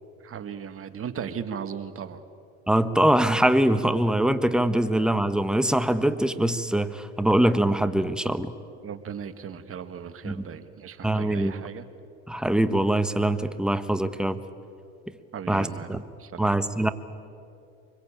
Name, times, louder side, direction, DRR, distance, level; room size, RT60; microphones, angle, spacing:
voice 1, 0.2-2.2 8.8-11.9 15.3-16.5, right 7 dB, 45° right, 10 dB, 1.7 m, -37 dB
voice 2, 2.7-8.5 10.2-10.4 11.0-11.5 12.3-14.4 15.5-16.0 16.4-16.9, right 1 dB, 5° right, 11 dB, 1.3 m, -23 dB
24.5 x 22.0 x 8.9 m, 2.6 s
supercardioid pair, 80°, 30 cm